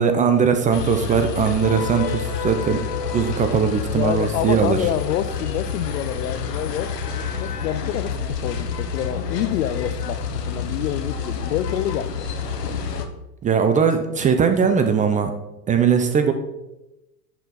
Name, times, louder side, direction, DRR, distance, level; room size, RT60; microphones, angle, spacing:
voice 1, 0.0-2.8 3.1-4.8 13.4-15.3 15.7-16.3, right 6 dB, 15° right, 7 dB, 0.5 m, -19 dB
sound 1, 0.7-13.1, left 5 dB, 85° left, 1.1 m, -28 dB
voice 2, 3.9-12.3 12.6-12.9, left 11 dB, 65° left, 14 dB, 0.7 m, -27 dB
10.5 x 4.3 x 4.1 m, 0.96 s
hypercardioid pair, 105°, 48 cm